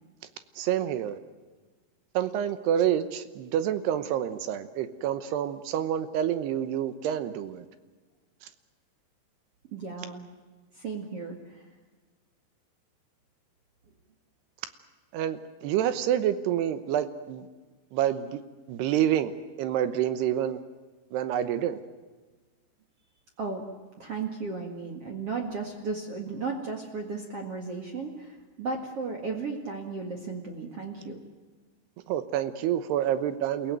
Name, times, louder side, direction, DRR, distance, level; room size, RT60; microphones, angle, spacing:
voice 1, 0.6-1.2 2.1-7.7 15.1-17.5 17.9-18.4 18.7-19.3 19.6-20.6 21.1-21.8 32.1-33.8, right 10 dB, 80° right, 11 dB, 3.1 m, -28 dB
voice 2, 9.7-10.2 10.7-11.7 23.4-23.6 24.0-31.2, right 4 dB, 45° right, 2 dB, 2.4 m, -35 dB
29.0 x 17.0 x 9.1 m, 1.3 s
omnidirectional pair, 4.7 m